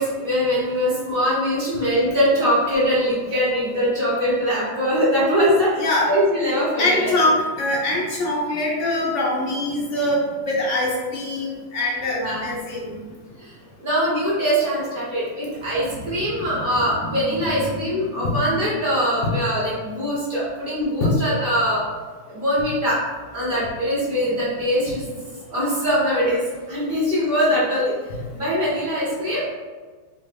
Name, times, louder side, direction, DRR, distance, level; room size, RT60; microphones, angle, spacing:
voice 1, 0.0-7.1 12.1-12.5 13.4-21.8 22.3-23.0 23.3-25.1 25.5-27.9 28.3-29.4, equal, 35° right, -8 dB, 1.0 m, -22 dB
voice 2, 5.8-6.1 6.8-13.0 18.2-18.4 19.2-19.4 21.0-21.3 28.1-28.2, left 1 dB, 85° left, -4 dB, 0.6 m, -23 dB
3.9 x 2.1 x 3.3 m, 1.4 s
omnidirectional pair, 2.0 m